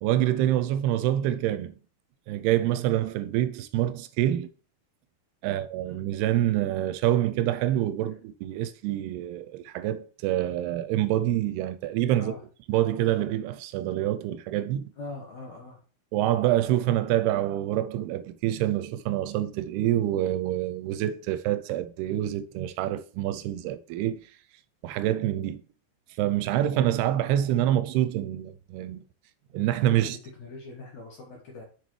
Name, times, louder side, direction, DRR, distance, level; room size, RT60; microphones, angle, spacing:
voice 1, 0.0-1.8 2.3-4.5 5.4-12.3 12.7-14.9 16.1-24.2 24.8-25.6 26.2-29.0 29.5-30.2, right 13 dB, 85° right, 2.5 m, -26 dB
voice 2, 5.4-6.0 12.2-12.4 15.0-15.8 26.5-26.6 30.0-31.6, left 3 dB, 65° left, 1.9 m, -42 dB
6.7 x 6.7 x 3.1 m
omnidirectional pair, 4.7 m